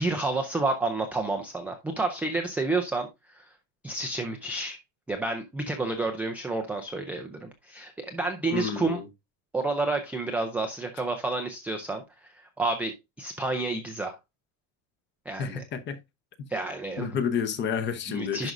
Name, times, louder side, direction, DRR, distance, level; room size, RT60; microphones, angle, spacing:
voice 1, 0.0-3.5 3.8-4.8 5.1-9.0 9.5-14.2 15.3-15.6 16.5-17.1 18.1-18.5, right 2 dB, 5° right, 0.4 m, -30 dB
voice 2, 8.5-9.1 15.4-16.0 17.0-18.5, left 7 dB, 30° left, 0.8 m, -30 dB
11.0 x 5.2 x 2.5 m
cardioid pair, 175°, 39 cm